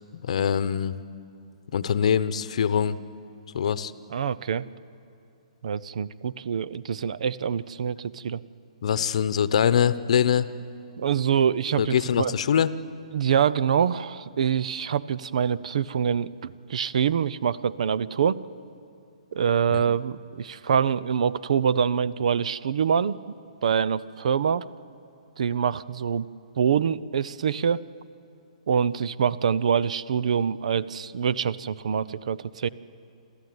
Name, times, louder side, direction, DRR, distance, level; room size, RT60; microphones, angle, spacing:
voice 1, 0.1-1.0 1.7-3.0 3.5-3.9 8.8-10.5 11.8-12.7 19.7-19.8, left 8 dB, 65° left, 15 dB, 0.9 m, -23 dB
voice 2, 4.1-4.7 5.6-8.4 11.0-12.3 13.1-18.4 19.3-23.2 23.6-24.7 25.4-26.3 26.6-27.8 28.7-32.7, right 7 dB, 65° right, 17 dB, 0.6 m, -25 dB
27.5 x 13.5 x 9.5 m, 2.5 s
hypercardioid pair, 145°, 4 cm